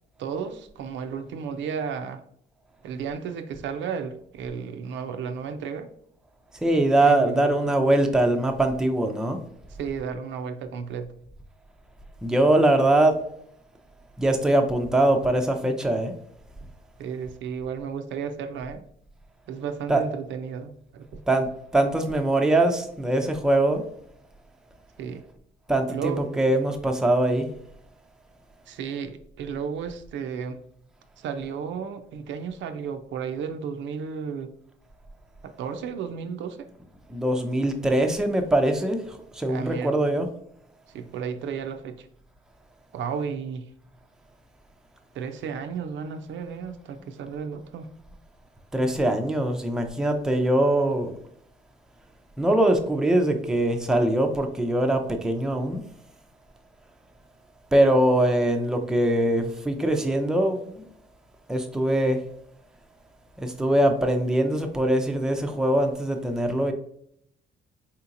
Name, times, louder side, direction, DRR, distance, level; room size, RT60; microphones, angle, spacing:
voice 1, 0.2-2.2 2.8-5.9 7.0-7.5 9.8-11.1 17.0-18.8 19.5-21.2 25.0-25.2 25.9-26.2 28.7-30.6 31.2-34.5 35.4-36.7 39.5-39.9 40.9-42.1 42.9-43.7 45.1-47.9, right 6 dB, 70° right, 7 dB, 0.4 m, -33 dB
voice 2, 6.6-9.4 12.2-13.2 14.2-16.1 19.9-20.0 21.3-23.8 25.7-27.5 37.1-40.3 48.7-51.1 52.4-55.8 57.7-60.8 61.5-62.2 63.4-66.7, right 1 dB, 5° right, 4 dB, 0.4 m, -22 dB
3.7 x 2.8 x 2.5 m, 0.69 s
cardioid pair, 90°, 20 cm